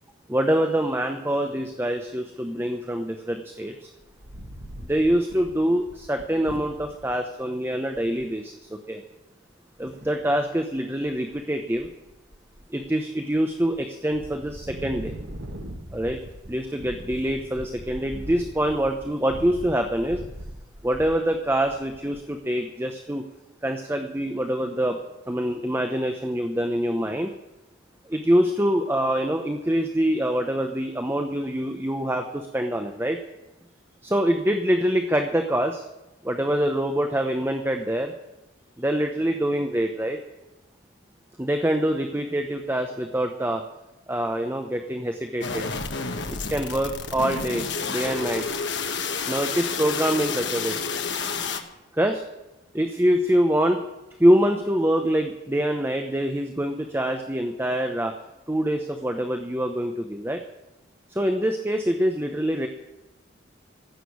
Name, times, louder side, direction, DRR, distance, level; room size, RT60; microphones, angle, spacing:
voice 1, 0.3-3.9 4.8-9.0 9.8-11.9 12.7-15.1 15.9-16.2 16.5-20.2 20.8-23.3 23.6-25.0 25.3-27.3 28.1-33.2 34.0-35.9 36.2-38.1 38.8-40.2 41.4-43.6 44.1-45.7 46.5-48.5 49.3-50.8 51.9-52.2 52.7-53.8 54.2-58.1 58.5-60.4 61.1-62.7, equal, 10° right, 5 dB, 0.8 m, -25 dB
Wind, 4.0-7.1 7.7-7.8 7.9-8.3 9.8-10.4 10.9-11.4 11.7-12.9 13.3-13.8 14.1-22.3, equal, 70° right, 1.6 m, -41 dB
sound 1, 45.4-51.6, left 5 dB, 65° left, 1.4 m, -30 dB
15.5 x 6.7 x 9.5 m, 0.98 s
head